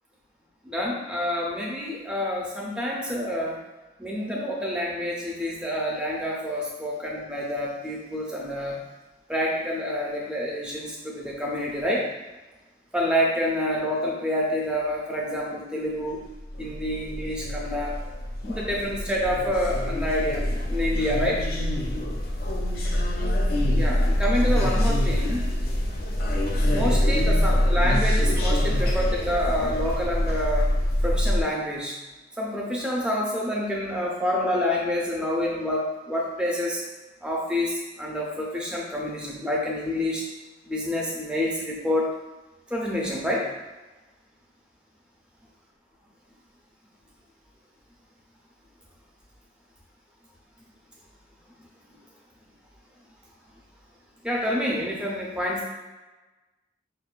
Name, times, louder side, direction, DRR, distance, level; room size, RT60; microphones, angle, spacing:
voice 1, 0.7-3.6 4.0-8.8 9.3-12.1 12.9-16.2 16.6-18.0 18.5-21.4 23.7-25.5 26.7-30.7 31.0-32.0 32.4-36.8 37.2-40.2 40.6-42.1 42.7-43.5 54.2-55.7, left 1 dB, 5° right, -3 dB, 0.5 m, -28 dB
sound 1, 16.5-31.4, left 1 dB, 50° left, 0.4 m, -24 dB
5.0 x 2.2 x 2.4 m, 1.2 s
head